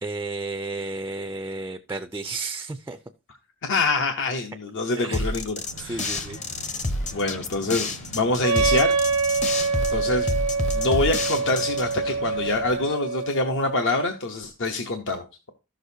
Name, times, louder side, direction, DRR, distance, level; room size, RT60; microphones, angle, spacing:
voice 1, 0.0-3.0 4.9-5.3 5.8-6.4, right 3 dB, 10° right, 8 dB, 0.4 m, -32 dB
voice 2, 3.6-6.2 7.1-9.0 9.9-10.3 10.7-15.5, left 2 dB, 55° left, 5 dB, 0.8 m, -26 dB
sound 1, 5.1-11.9, left 2 dB, 30° left, 0.8 m, -29 dB
sound 2, 5.6-12.9, right 1 dB, 85° left, 3.0 m, -43 dB
Wind instrument woodwind instrument, 8.4-14.0, right 4 dB, 70° right, 0.5 m, -25 dB
13.5 x 6.4 x 2.7 m, 0.29 s
head